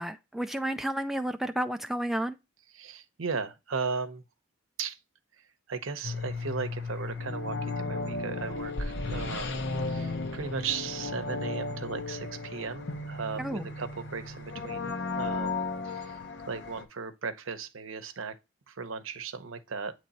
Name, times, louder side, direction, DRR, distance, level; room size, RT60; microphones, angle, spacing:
voice 1, 0.0-2.4 13.4-13.7, right 1 dB, ahead, 0.3 m, -31 dB
voice 2, 2.7-4.2 4.8-5.0 5.7-16.2 16.5-18.4 18.7-19.9, right 5 dB, 85° right, 0.8 m, -36 dB
sound 1, 6.0-16.8, left 3 dB, 60° left, 0.8 m, -35 dB
8.7 x 3.2 x 4.1 m
head